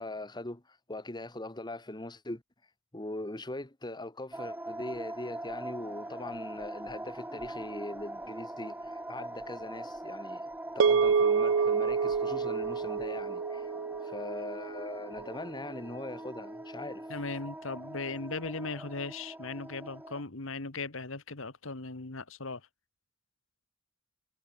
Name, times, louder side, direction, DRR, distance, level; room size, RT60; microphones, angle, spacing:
voice 1, 0.0-2.4 2.9-10.4 10.7-13.7 14.0-17.1, left 2 dB, 20° left, 1.7 m, -41 dB
sound 1, 4.3-20.2, right 1 dB, 10° right, 4.1 m, -42 dB
sound 2, 10.8-15.3, right 5 dB, 65° right, 0.5 m, -28 dB
voice 2, 17.1-22.6, left 3 dB, 70° left, 1.8 m, -38 dB
head